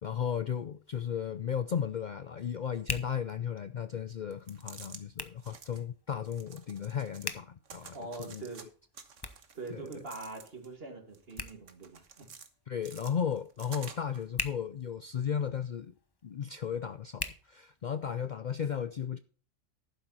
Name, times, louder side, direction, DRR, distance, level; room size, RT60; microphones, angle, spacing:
voice 1, 0.0-8.4 9.7-9.9 12.7-15.9 16.2-19.2, left 8 dB, 55° left, 0.5 m, -35 dB
Hands, 0.6-18.3, left 3 dB, 20° left, 0.9 m, -46 dB
sound 1, 4.3-5.0 5.4-5.8 6.2-7.3 7.6-8.6 8.9-10.7 11.1-12.5 12.8-14.2, right 6 dB, 85° right, 1.6 m, -50 dB
voice 2, 7.9-8.7 9.5-12.3, right 3 dB, 50° right, 2.6 m, -43 dB
11.5 x 9.2 x 4.1 m
omnidirectional pair, 1.3 m